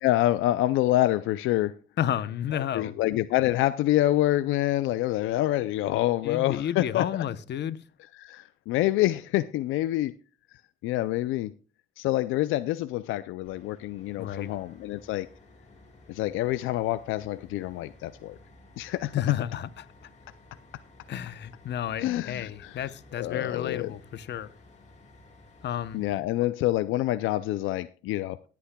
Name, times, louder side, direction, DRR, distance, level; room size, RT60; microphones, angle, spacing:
voice 1, 0.0-1.7 2.5-7.1 8.2-10.1 10.8-11.5 12.0-15.3 16.1-18.4 18.8-19.1 22.0-22.9 23.2-23.9 25.9-28.4, left 15 dB, 90° left, 0.4 m, -27 dB
voice 2, 2.0-2.9 6.2-7.8 14.2-14.5 19.1-19.9 21.1-24.5 25.6-26.0, left 10 dB, 60° left, 0.8 m, -31 dB
sound 1, 13.4-26.2, left 2 dB, 35° left, 2.6 m, -54 dB
22.0 x 8.5 x 2.2 m
cardioid pair, 90°, 20 cm